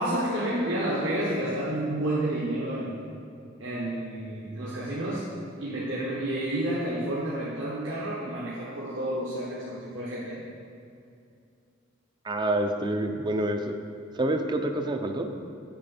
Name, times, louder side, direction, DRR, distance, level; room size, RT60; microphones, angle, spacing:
voice 1, 0.0-2.9 3.6-10.4, right 1 dB, 70° right, -7 dB, 1.2 m, -30 dB
voice 2, 12.2-13.7 14.2-15.3, right 1 dB, 20° right, 6 dB, 0.4 m, -27 dB
8.7 x 6.1 x 4.2 m, 2.5 s
head